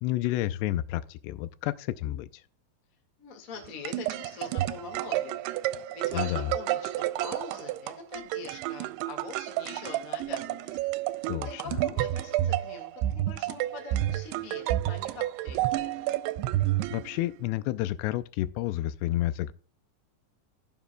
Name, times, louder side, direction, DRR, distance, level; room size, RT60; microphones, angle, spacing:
voice 1, 0.0-2.4 6.1-6.5 11.3-11.8 16.9-19.5, left 15 dB, 90° left, 2.8 m, -30 dB
voice 2, 3.2-5.4 5.9-10.8 11.4-16.1, left 4 dB, 75° left, 0.7 m, -43 dB
sound 1, 3.6-17.4, right 14 dB, 85° right, 2.5 m, -30 dB
16.0 x 7.2 x 2.2 m
omnidirectional pair, 4.8 m